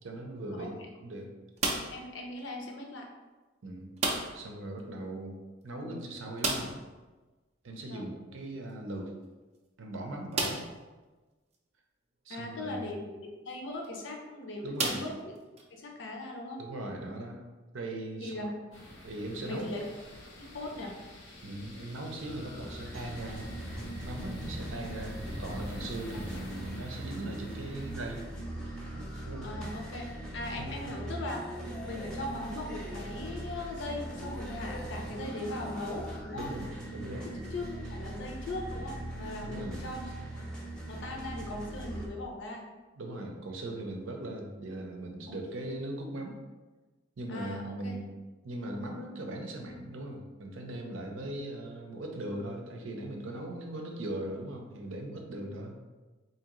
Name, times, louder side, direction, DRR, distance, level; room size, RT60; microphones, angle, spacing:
voice 1, 0.0-1.3 3.6-3.9 4.3-5.4 5.6-6.8 7.6-9.1 9.8-10.6 12.3-12.9 14.6-15.0 16.6-17.4 17.7-18.5 19.0-19.7 21.4-23.5 24.0-28.3 29.3-29.5 30.6-30.8 36.3-37.3 39.4-39.8 43.0-46.4 47.2-48.1 48.4-55.9, right 1 dB, 75° right, 2 dB, 0.6 m, -39 dB
voice 2, 1.6-3.1 7.9-8.1 12.3-13.1 13.5-15.3 15.7-16.6 18.2-18.5 19.4-19.9 20.4-21.0 29.4-30.1 30.3-31.4 31.8-36.5 37.2-40.1 40.9-42.7 47.3-48.0, left 2 dB, 65° left, 1 dB, 0.6 m, -39 dB
sound 1, 1.6-2.1 4.0-4.5 4.8-4.9 5.2-5.3 6.4-6.9 8.7-8.8 9.4-9.5 10.3-10.8 11.5-11.6 13.7-13.9 14.8-15.6, right 3 dB, 30° right, 0.4 m, -32 dB
sound 2, 18.7-28.3, left 1 dB, 80° left, 1.0 m, -46 dB
sound 3, 22.2-42.0, right 1 dB, 5° left, 0.7 m, -40 dB
3.7 x 2.8 x 3.0 m, 1.2 s
head